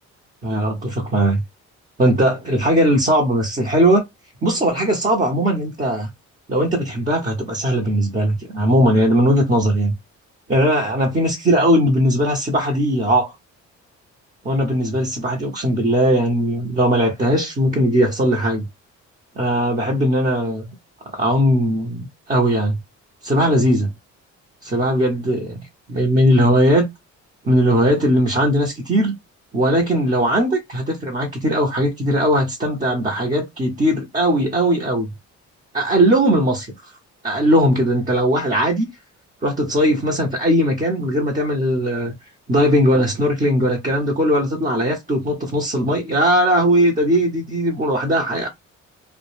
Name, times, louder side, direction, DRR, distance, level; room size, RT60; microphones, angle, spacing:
voice 1, 0.4-1.4 2.0-4.0 4.4-6.1 6.5-9.9 10.5-13.3 14.4-18.6 19.4-20.7 21.1-22.8 23.2-23.9 24.6-25.6 25.9-26.8 27.4-29.1 29.5-35.1 35.7-36.7 37.2-38.9 39.4-42.1 42.5-48.5, equal, 25° right, 0.9 m, -19 dB
2.2 x 2.2 x 3.1 m
cardioid pair, 90°, 30 cm